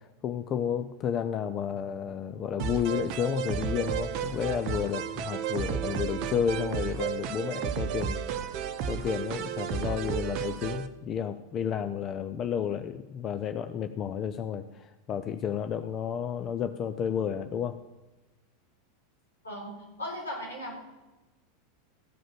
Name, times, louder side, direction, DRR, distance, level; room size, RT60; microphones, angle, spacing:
voice 1, 0.2-8.2 8.9-14.6 15.1-17.8, left 8 dB, 30° left, 9 dB, 0.6 m, -31 dB
sound 1, 2.6-10.9, right 8 dB, 45° right, 0.8 m, -33 dB
voice 2, 19.4-20.8, equal, 80° left, -4 dB, 5.0 m, -37 dB
15.0 x 5.1 x 7.5 m, 1.1 s
figure-of-eight pair, 85°, 0 cm